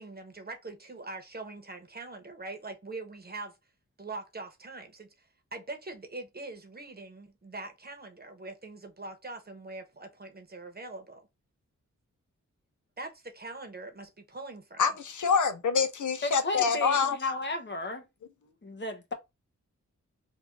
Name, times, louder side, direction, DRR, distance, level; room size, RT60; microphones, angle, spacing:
voice 1, 0.0-3.6 4.0-5.3 5.5-11.3 13.0-14.8, right 3 dB, 30° right, 1.0 m, -42 dB
voice 2, 14.8-17.2, left 5 dB, 75° left, 0.6 m, -26 dB
voice 3, 16.2-18.0 18.4-19.1, left 2 dB, 35° left, 0.9 m, -34 dB
3.5 x 2.4 x 3.7 m
wide cardioid pair, 95°, 30 cm